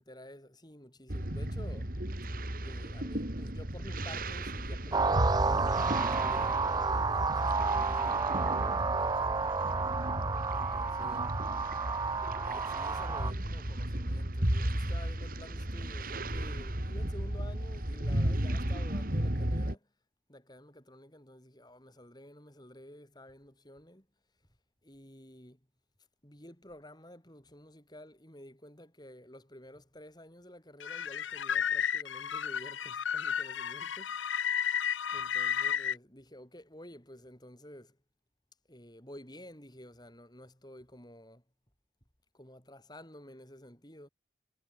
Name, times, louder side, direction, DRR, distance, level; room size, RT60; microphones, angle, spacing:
voice 1, 0.0-1.9 2.6-9.4 10.5-11.4 12.1-19.9 20.3-24.1 24.8-25.6 26.2-34.4 35.1-38.0 38.7-41.4 42.3-44.1, left 1 dB, 20° left, 6.7 m, -51 dB
sound 1, 1.1-19.7, right 1 dB, 50° right, 3.2 m, -34 dB
sound 2, 4.9-13.3, right 4 dB, 20° right, 0.4 m, -31 dB
sound 3, 30.8-36.0, left 8 dB, 85° left, 0.7 m, -32 dB
head